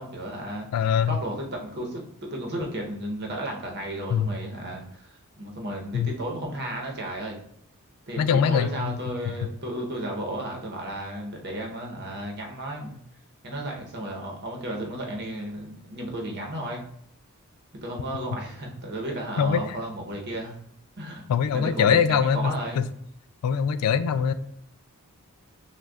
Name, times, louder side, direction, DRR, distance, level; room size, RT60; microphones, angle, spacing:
voice 1, 0.0-0.7 1.1-7.4 8.1-13.0 13.4-16.8 17.8-20.6 21.0-21.2 21.5-22.8, right 1 dB, 50° right, 1 dB, 0.8 m, -34 dB
voice 2, 0.7-1.2 4.1-4.3 5.9-6.1 8.2-9.0 19.4-19.8 21.3-22.9 23.4-24.3, left 7 dB, 85° left, 15 dB, 0.3 m, -23 dB
6.1 x 2.2 x 2.3 m, 0.69 s
head